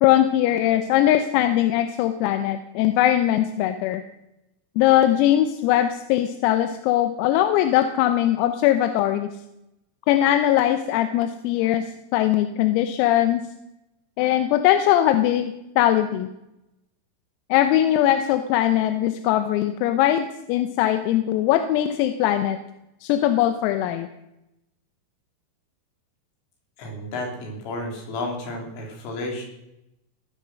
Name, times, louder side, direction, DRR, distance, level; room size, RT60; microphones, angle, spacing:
voice 1, 0.0-4.0 4.8-9.3 10.1-11.8 12.1-13.4 14.2-16.3 17.5-22.6 23.0-24.1, left 12 dB, 90° left, 8 dB, 3.6 m, -20 dB
voice 2, 26.8-29.5, left 2 dB, 70° left, 0 dB, 6.2 m, -32 dB
18.0 x 12.5 x 6.3 m, 0.89 s
omnidirectional pair, 6.0 m